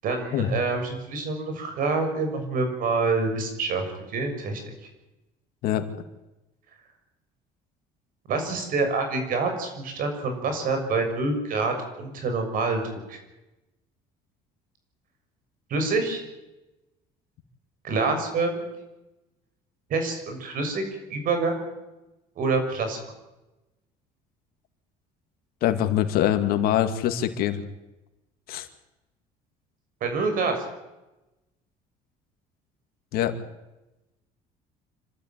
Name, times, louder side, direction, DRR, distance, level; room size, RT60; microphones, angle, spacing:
voice 1, 0.0-4.6 8.3-12.8 13.1-13.2 15.7-16.2 17.8-18.6 19.9-20.8 21.1-21.6 22.4-23.0 30.0-30.6, right 3 dB, 60° right, 5 dB, 6.6 m, -26 dB
voice 2, 25.6-27.6 28.5-28.7 33.1-33.3, left 11 dB, 70° left, 8 dB, 2.3 m, -24 dB
27.0 x 12.5 x 9.3 m, 1.0 s
supercardioid pair, 95°, 16 cm